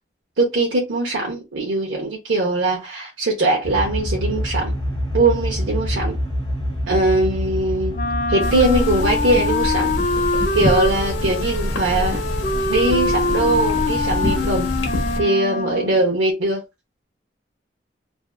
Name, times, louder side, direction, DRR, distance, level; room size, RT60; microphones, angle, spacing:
voice 1, 0.4-4.7 5.1-6.2 6.9-8.0 8.3-9.9 10.5-12.2 12.7-14.7 15.1-16.6, right 2 dB, 90° right, 0.7 m, -21 dB
sound 1, 3.6-15.2, equal, 20° left, 1.0 m, -28 dB
Wind instrument woodwind instrument, 7.9-16.0, left 3 dB, 45° left, 0.4 m, -24 dB
sound 2, 8.4-15.2, left 1 dB, 85° left, 0.9 m, -26 dB
2.5 x 2.3 x 2.2 m
head